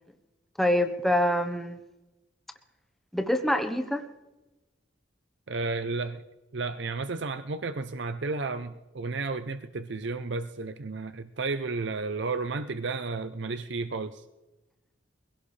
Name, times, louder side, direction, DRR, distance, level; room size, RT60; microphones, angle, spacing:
voice 1, 0.6-1.8 3.1-4.0, left 1 dB, ahead, 6 dB, 1.0 m, -25 dB
voice 2, 5.5-6.2 6.5-14.2, right 3 dB, 60° right, 10 dB, 0.6 m, -32 dB
23.5 x 17.0 x 3.3 m, 1.1 s
head